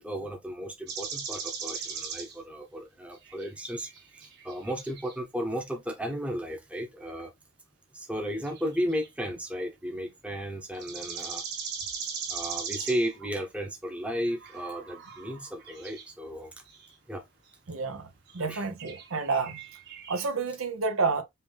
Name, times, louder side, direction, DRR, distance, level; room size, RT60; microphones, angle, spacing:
voice 1, 0.0-7.3 7.9-11.4 12.3-16.5 17.1-17.2 18.5-18.6, equal, 5° right, 0.8 m, -34 dB
sound 1, 0.9-2.4 3.1-5.2 8.4-9.1 10.7-13.2 14.0-16.1 16.7-16.9 17.5-17.6 18.3-18.4 18.8-20.3, right 6 dB, 55° right, 1.5 m, -39 dB
voice 2, 17.7-18.0 18.3-19.6 20.1-21.2, right 4 dB, 80° right, 0.9 m, -29 dB
5.5 x 2.6 x 3.4 m
head